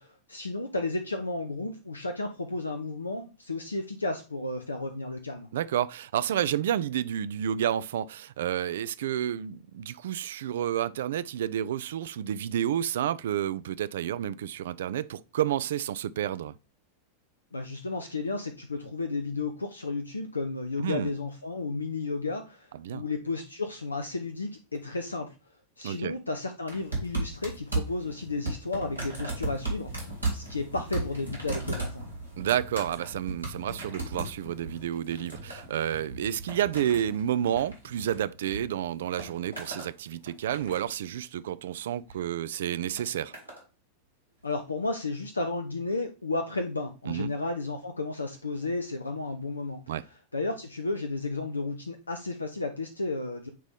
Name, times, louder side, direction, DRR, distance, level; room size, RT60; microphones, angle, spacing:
voice 1, 0.0-5.5 17.5-25.3 25.8-32.1 44.4-49.8 50.3-53.5, left 3 dB, 80° left, 0.6 m, -33 dB
voice 2, 5.5-16.5 20.8-21.1 22.8-23.0 25.8-26.1 32.4-43.3 47.1-47.3 49.9-50.0, right 10 dB, 60° right, 0.3 m, -30 dB
sound 1, 26.7-38.6 38.9-39.9 40.3-41.0 41.9-42.2 43.0-43.6 44.5-44.6, right 2 dB, 90° right, 2.7 m, -36 dB
9.1 x 3.0 x 3.5 m
figure-of-eight pair, 90°, 0 cm